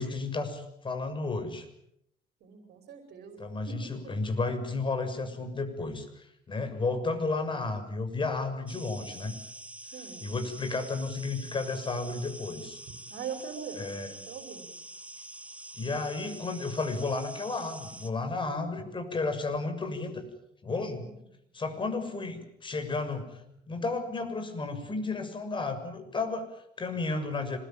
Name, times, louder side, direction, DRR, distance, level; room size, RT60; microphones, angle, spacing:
voice 1, 0.0-1.7 3.4-9.3 10.0-12.8 13.8-14.1 15.7-20.2 20.6-21.1 21.5-27.6, left 3 dB, 30° left, 7 dB, 6.7 m, -33 dB
voice 2, 2.4-3.4 3.7-3.9 9.9-10.2 13.1-13.8 14.3-14.7 20.9-21.2, right 7 dB, 65° right, 4 dB, 5.9 m, -41 dB
sound 1, 8.7-18.1, right 1 dB, 10° right, 2.0 m, -46 dB
26.0 x 21.0 x 9.0 m, 0.76 s
cardioid pair, 110°, 17 cm